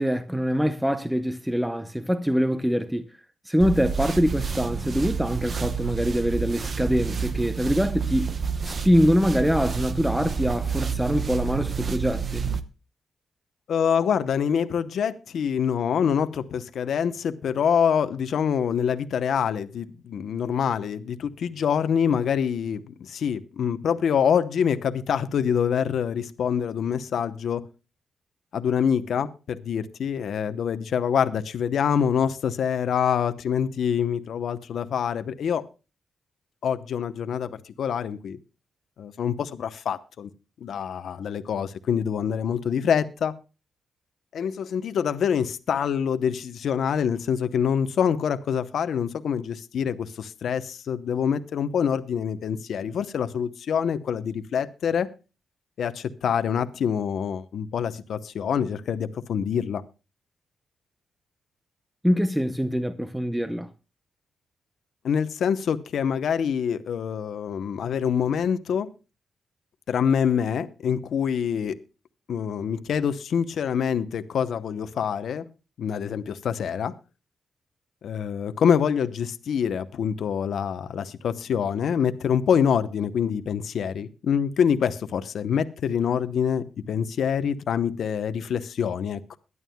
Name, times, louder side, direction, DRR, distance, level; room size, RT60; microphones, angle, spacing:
voice 1, 0.0-3.1 3.5-8.3 8.6-12.5 62.0-63.7, equal, 5° right, 0.7 m, -24 dB
sound 1, 3.6-12.6, right 6 dB, 45° right, 0.9 m, -29 dB
voice 2, 13.7-27.7 28.5-35.6 36.6-38.4 39.0-40.3 40.6-43.3 44.3-55.1 55.8-59.8 65.0-68.9 69.9-71.8 72.3-75.5 75.8-76.9 78.0-89.2, left 7 dB, 75° left, 0.8 m, -25 dB
22.0 x 11.0 x 2.2 m
cardioid pair, 110°, 0 cm